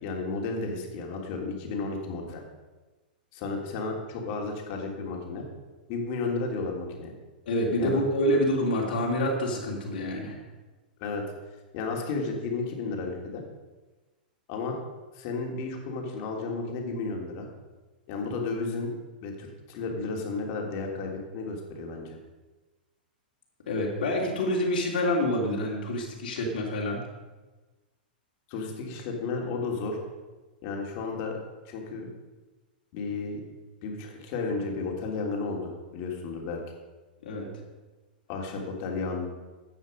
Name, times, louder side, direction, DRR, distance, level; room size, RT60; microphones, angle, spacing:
voice 1, 0.0-2.4 3.3-5.4 5.9-7.1 7.8-8.0 11.0-11.2 11.7-13.4 14.5-14.8 15.1-17.5 18.1-18.9 19.2-22.2 28.5-30.0 30.6-31.4 31.6-32.1 32.9-33.4 33.8-36.6 38.3-39.3, left 3 dB, 50° left, 1 dB, 3.2 m, -33 dB
voice 2, 7.4-10.4 23.7-27.0 37.2-37.5, left 1 dB, 70° left, -2 dB, 3.2 m, -27 dB
14.5 x 9.1 x 5.3 m, 1.2 s
hypercardioid pair, 115°, 5 cm